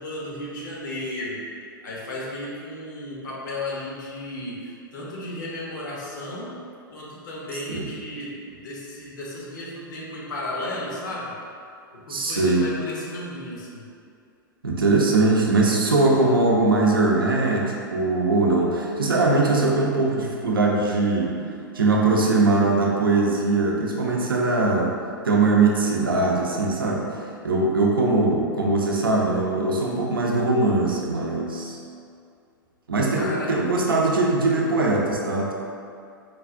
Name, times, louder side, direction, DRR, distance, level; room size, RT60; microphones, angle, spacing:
voice 1, 0.0-1.4 1.8-6.5 6.9-11.3 11.9-13.9 33.1-33.6, left 1 dB, 55° left, -5 dB, 0.9 m, -34 dB
voice 2, 12.1-12.7 14.6-21.4 21.7-24.9 25.2-27.1 27.4-31.8 32.9-35.5, right 3 dB, 75° right, -1 dB, 0.6 m, -21 dB
4.6 x 2.3 x 2.5 m, 2.4 s
figure-of-eight pair, 105°, 12 cm